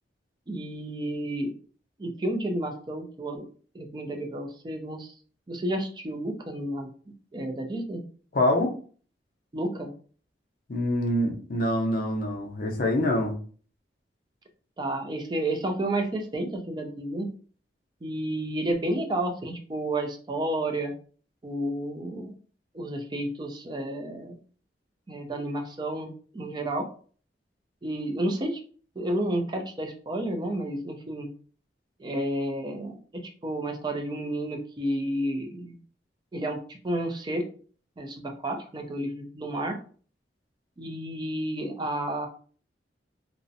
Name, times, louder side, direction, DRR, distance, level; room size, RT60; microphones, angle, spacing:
voice 1, 0.5-1.5 2.0-3.5 3.7-5.1 5.5-6.9 7.3-8.0 9.5-9.9 14.8-17.3 18.0-20.9 21.4-22.3 22.7-24.4 25.1-26.9 27.8-28.6 29.0-31.3 32.0-33.0 33.4-35.8 36.3-37.4 38.0-39.8 40.8-42.3, right 1 dB, 25° right, 4 dB, 0.4 m, -31 dB
voice 2, 8.3-8.7 10.7-13.4, left 1 dB, 50° left, 2 dB, 0.5 m, -25 dB
2.5 x 2.0 x 2.6 m, 0.42 s
head